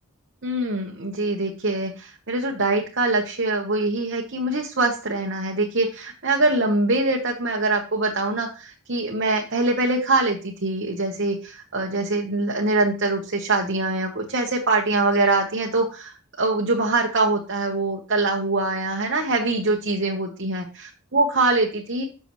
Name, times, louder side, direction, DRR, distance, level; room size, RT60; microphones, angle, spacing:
voice 1, 0.4-22.1, right 2 dB, 55° right, 0 dB, 1.1 m, -23 dB
11.5 x 6.8 x 3.1 m, 0.35 s
head